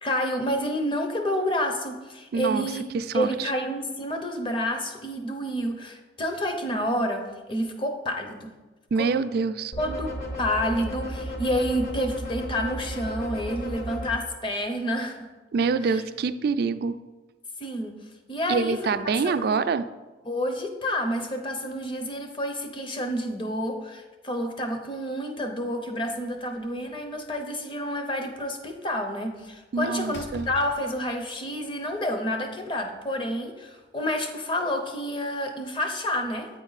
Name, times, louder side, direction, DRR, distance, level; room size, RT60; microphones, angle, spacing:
voice 1, 0.0-2.8 3.1-8.5 9.0-9.1 9.8-10.1 10.4-15.3 15.8-16.0 17.6-19.6 20.2-36.5, equal, 25° left, 5 dB, 0.7 m, -29 dB
voice 2, 2.3-2.7 2.9-3.5 8.9-9.7 15.5-17.0 18.5-19.8 29.7-30.5, right 5 dB, 55° right, 11 dB, 0.3 m, -25 dB
sound 1, 9.7-14.1, equal, 45° left, 1.0 m, -34 dB
Slam, 26.2-27.2 29.4-29.6 30.0-31.3, left 2 dB, 70° left, 0.5 m, -44 dB
8.6 x 4.4 x 4.0 m, 1.2 s
head